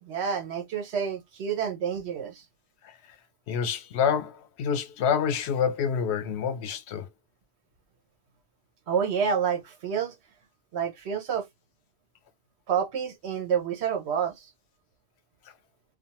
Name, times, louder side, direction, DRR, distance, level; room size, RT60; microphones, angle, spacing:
voice 1, 0.0-2.4 8.9-10.2 10.7-11.5 12.7-14.5, right 7 dB, 80° right, 1.0 m, -28 dB
voice 2, 3.5-7.1, left 7 dB, 85° left, 0.9 m, -27 dB
2.5 x 2.4 x 2.9 m
omnidirectional pair, 1.1 m